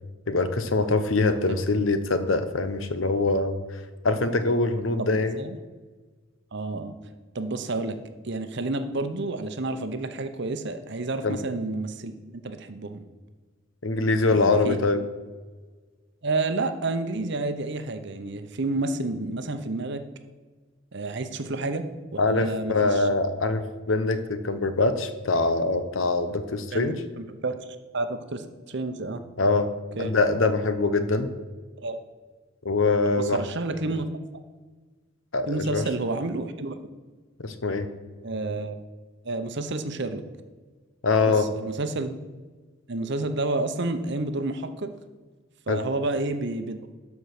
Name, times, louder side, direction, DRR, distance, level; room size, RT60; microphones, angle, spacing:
voice 1, 0.3-3.6 4.0-5.4 11.2-11.4 13.8-15.0 22.2-27.0 29.4-29.7 30.0-31.3 32.6-33.4 35.3-35.8 37.4-37.9 41.0-41.5 45.7-45.8, left 3 dB, 65° left, 10 dB, 0.9 m, -23 dB
voice 2, 5.0-5.6 6.5-7.0 7.3-8.0 8.2-13.0 14.3-14.8 16.2-20.0 20.9-21.9 22.3-23.1 26.7-27.6 27.9-29.2 30.0-30.1 31.8-32.0 33.2-34.1 35.5-36.7 38.2-38.8 39.2-40.2 41.2-42.1 42.9-44.9 45.7-46.9, right 2 dB, 55° right, 9 dB, 0.8 m, -30 dB
12.5 x 4.7 x 6.6 m, 1.4 s
head